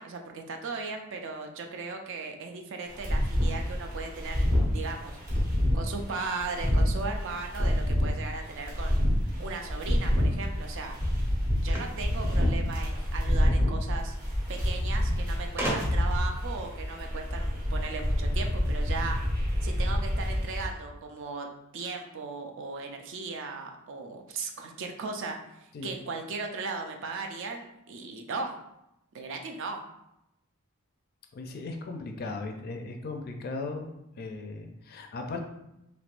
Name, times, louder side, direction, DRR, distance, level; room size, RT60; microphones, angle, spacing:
voice 1, 0.0-4.5 4.7-5.2 5.7-9.0 9.4-11.0 11.6-14.1 14.5-19.2 19.6-21.5 21.7-28.6 29.1-29.8, right 4 dB, 60° right, 4 dB, 0.4 m, -37 dB
sound 1, 2.9-20.7, equal, 40° right, 0.8 m, -28 dB
sound 2, 11.7-13.1 14.2-14.3 14.5-14.6 15.6-16.2, right 1 dB, 10° right, 0.6 m, -34 dB
voice 2, 31.3-33.9 34.2-35.4, left 3 dB, 45° left, 4 dB, 0.4 m, -37 dB
3.3 x 2.9 x 2.5 m, 0.86 s
head